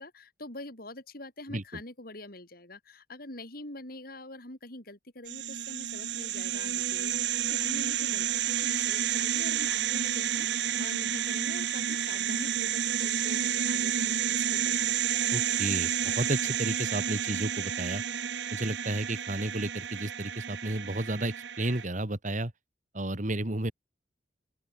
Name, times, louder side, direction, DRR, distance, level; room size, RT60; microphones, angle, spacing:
voice 1, 0.0-15.0, left 2 dB, 55° left, 5.7 m, -45 dB
voice 2, 1.5-1.8 15.3-18.0 18.5-22.5 22.9-23.7, right 1 dB, 45° right, 2.2 m, -32 dB
sound 1, 5.3-21.8, right 9 dB, 70° right, 0.7 m, -30 dB
open air
head